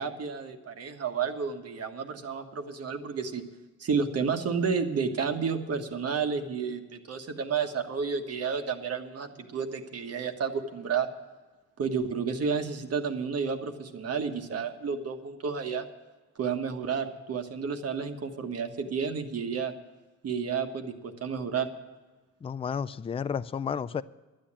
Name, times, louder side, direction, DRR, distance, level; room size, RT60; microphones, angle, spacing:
voice 1, 0.0-3.5 3.8-11.1 11.8-15.9 16.4-19.7 20.2-21.7, right 6 dB, 55° right, 1.4 m, -31 dB
voice 2, 22.4-24.0, left 7 dB, 20° left, 0.4 m, -32 dB
12.0 x 8.8 x 8.7 m
cardioid pair, 90°, 30 cm